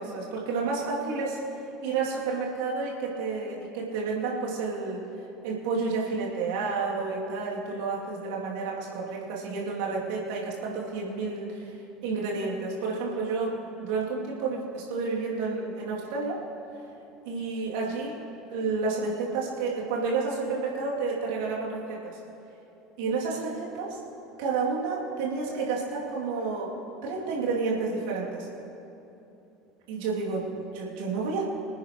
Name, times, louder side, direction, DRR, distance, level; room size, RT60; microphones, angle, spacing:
voice 1, 0.0-1.4 1.8-5.0 5.4-11.7 12.0-16.4 17.2-18.2 18.5-22.2 23.0-24.0 24.4-26.7 27.0-28.5 29.9-31.4, right 4 dB, 60° right, -4 dB, 2.8 m, -30 dB
25.5 x 9.4 x 3.1 m, 2.9 s
figure-of-eight pair, 70°, 0 cm